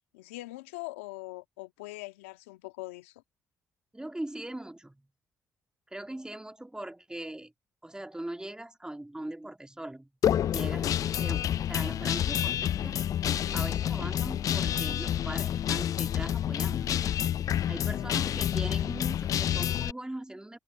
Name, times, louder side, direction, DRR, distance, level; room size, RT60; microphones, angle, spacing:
voice 1, 0.1-3.1 17.9-18.2, left 20 dB, 90° left, 1.8 m, -42 dB
voice 2, 3.9-5.1 5.9-7.5 7.8-10.1 10.5-13.0 13.5-17.1 17.7-20.6, right 1 dB, 10° right, 2.4 m, -40 dB
Guitar, 10.2-19.9, left 10 dB, 60° left, 0.5 m, -28 dB
hypercardioid pair, 45°, 7 cm